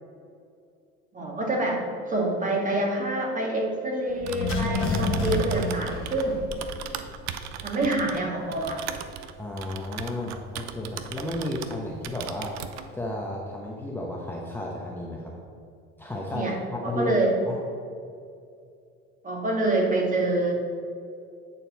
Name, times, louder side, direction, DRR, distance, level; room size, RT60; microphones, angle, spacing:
voice 1, 1.1-1.8 2.1-6.4 7.6-8.8 16.3-16.5 16.8-17.3 19.2-20.5, right 2 dB, 25° right, -1 dB, 1.8 m, -26 dB
Typing, 4.1-11.8 12.0-12.9, right 9 dB, 60° right, 0.6 m, -36 dB
sound 1, 4.2-7.0 7.3-7.4, left 3 dB, 45° left, 1.5 m, -29 dB
voice 2, 9.4-12.5 12.9-15.3 16.0-17.2 17.5-17.6, left 1 dB, 5° left, -3 dB, 1.0 m, -32 dB
9.1 x 4.2 x 4.1 m, 2.4 s
supercardioid pair, 80°, 30 cm